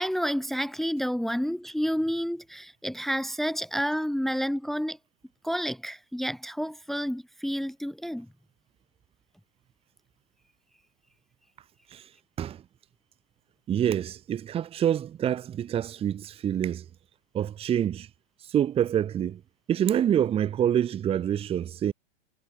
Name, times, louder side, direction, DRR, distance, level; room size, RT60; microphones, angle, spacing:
voice 1, 0.0-5.0 5.4-8.3, equal, ahead, 1.4 m, -30 dB
voice 2, 13.7-16.9 17.3-18.1 18.4-19.4 19.7-21.9, right 10 dB, 20° right, 2.0 m, -26 dB
hypercardioid pair, 150°, 31 cm